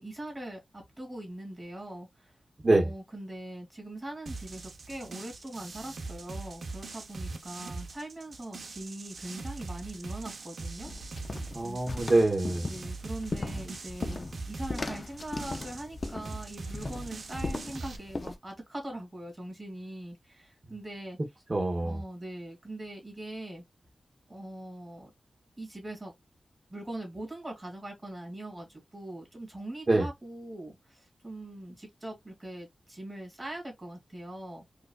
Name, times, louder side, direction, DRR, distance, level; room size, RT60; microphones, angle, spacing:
voice 1, 0.0-2.3 2.6-10.9 11.6-11.8 12.6-21.2 21.8-23.6 24.3-25.1 25.6-26.1 26.7-34.6, right 1 dB, 15° right, 2.1 m, -41 dB
sound 1, 4.3-18.0, right 3 dB, 65° right, 0.7 m, -42 dB
sound 2, 10.8-18.3, left 3 dB, 35° left, 0.5 m, -38 dB
voice 2, 11.5-12.7 21.5-22.0 29.9-30.1, right 2 dB, 30° right, 0.9 m, -25 dB
4.7 x 2.4 x 2.3 m
wide cardioid pair, 135°, 0 cm